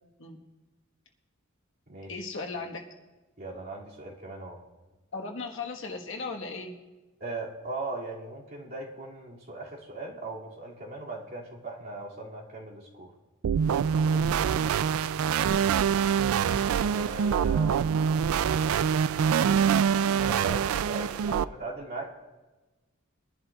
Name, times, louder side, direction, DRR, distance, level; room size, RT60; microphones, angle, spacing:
voice 1, 2.1-2.9 5.1-6.8 14.1-14.7, left 3 dB, 65° left, 1 dB, 1.4 m, -37 dB
voice 2, 3.4-4.6 7.2-13.1 16.8-17.7 20.2-22.1, right 2 dB, 50° right, -4 dB, 2.5 m, -39 dB
sound 1, 13.4-21.4, right 7 dB, 80° right, 0.3 m, -25 dB
22.5 x 11.0 x 2.4 m, 1.2 s
head